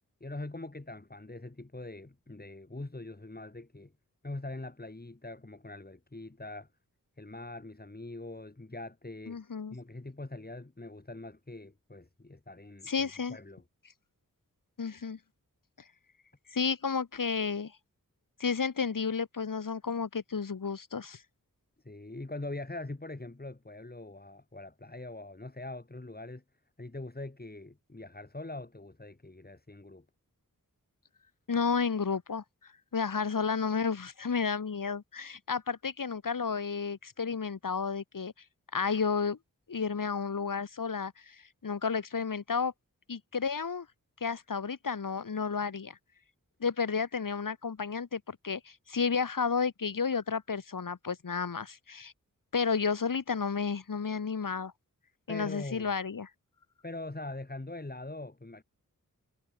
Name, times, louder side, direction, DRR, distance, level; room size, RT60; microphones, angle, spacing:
voice 1, 0.2-3.9 4.2-6.7 7.2-9.4 9.7-13.6 21.8-26.4 26.8-30.0 55.3-55.9 56.8-58.6, left 2 dB, 25° left, 7.3 m, -43 dB
voice 2, 9.3-9.8 12.9-13.4 14.8-15.2 16.5-17.7 18.4-21.2 31.5-32.4 32.9-38.3 38.7-39.4 39.7-42.7 43.1-43.9 44.2-46.0 46.6-52.1 52.5-54.7 55.3-56.3, left 5 dB, 70° left, 2.6 m, -32 dB
wide cardioid pair, 70°, 34 cm